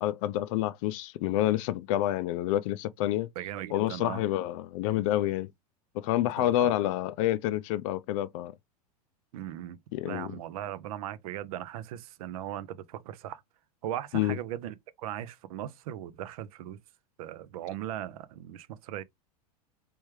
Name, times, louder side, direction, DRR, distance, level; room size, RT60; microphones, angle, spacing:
voice 1, 0.0-3.3 3.7-5.5 5.9-8.5 9.9-10.3 14.1-14.4, left 14 dB, 55° left, 0.4 m, -28 dB
voice 2, 3.4-4.2 6.2-6.7 9.3-9.8 10.0-13.4 13.8-16.8 17.2-19.0, right 12 dB, 60° right, 0.5 m, -38 dB
3.4 x 3.2 x 3.1 m
hypercardioid pair, 100°, 21 cm